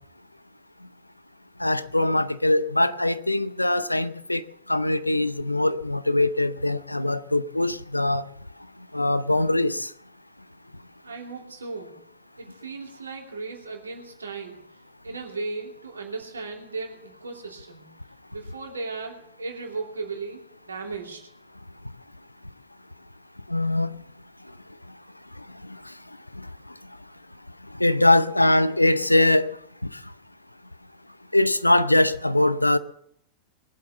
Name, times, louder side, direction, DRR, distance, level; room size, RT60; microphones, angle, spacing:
voice 1, 1.6-8.2 8.9-9.9 23.5-23.9 25.6-25.8 26.4-26.5 27.8-29.5 31.3-32.8, left 1 dB, 85° left, 17 dB, 0.6 m, -22 dB
voice 2, 11.0-11.9 12.4-14.6 15.0-17.9 18.3-20.4 20.6-21.3, right 3 dB, 75° right, 2 dB, 2.9 m, -36 dB
22.0 x 7.9 x 7.1 m, 0.70 s
figure-of-eight pair, 90°, 0 cm